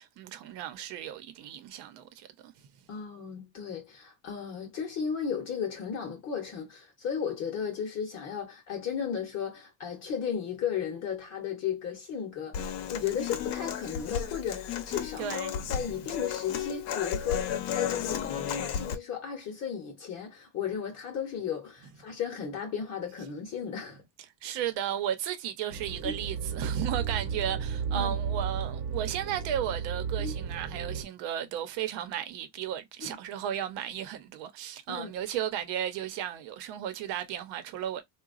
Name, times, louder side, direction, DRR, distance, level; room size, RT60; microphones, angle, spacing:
voice 1, 0.0-2.5 15.2-15.8 24.4-38.0, right 10 dB, 80° right, 0.8 m, -34 dB
voice 2, 2.9-15.4 15.7-24.0 26.0-26.1 27.9-28.1 30.2-30.3 33.1-33.2 34.9-35.1, left 7 dB, 35° left, 0.8 m, -35 dB
Human voice / Acoustic guitar, 12.5-19.0, left 8 dB, 70° left, 0.8 m, -34 dB
sound 1, 25.7-31.0, right 7 dB, 55° right, 1.0 m, -33 dB
3.9 x 2.3 x 2.4 m
cardioid pair, 175°, 43 cm